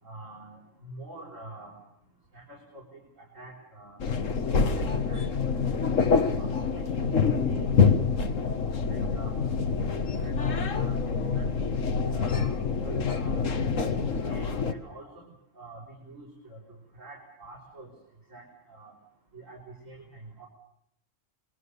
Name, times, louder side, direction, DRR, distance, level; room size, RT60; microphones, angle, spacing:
voice 1, 0.0-1.8 2.3-4.1 4.7-5.9 6.4-7.7 8.9-11.0 11.3-13.4 14.2-15.3 15.6-17.9 18.3-18.9 19.3-20.5, right 2 dB, 75° right, 1 dB, 5.7 m, -46 dB
sound 1, 4.0-14.7, left 5 dB, 75° left, 1.8 m, -26 dB
29.0 x 22.0 x 6.9 m, 0.75 s
omnidirectional pair, 1.3 m